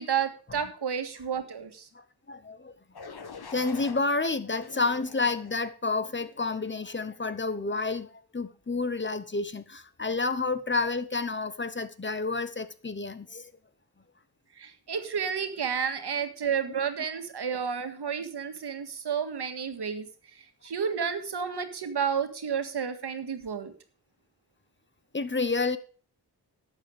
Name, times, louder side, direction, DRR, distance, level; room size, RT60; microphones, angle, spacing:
voice 1, 0.0-1.9 14.6-20.1 20.6-23.7, right 7 dB, 75° right, 1.9 m, -31 dB
voice 2, 1.9-2.7 3.5-13.5 16.7-16.8 25.1-25.8, left 3 dB, 30° left, 0.9 m, -30 dB
sound 1, 2.9-4.0 4.5-5.6 6.2-6.5, left 5 dB, 70° left, 1.6 m, -45 dB
12.0 x 8.1 x 5.2 m
wide cardioid pair, 130°, 40 cm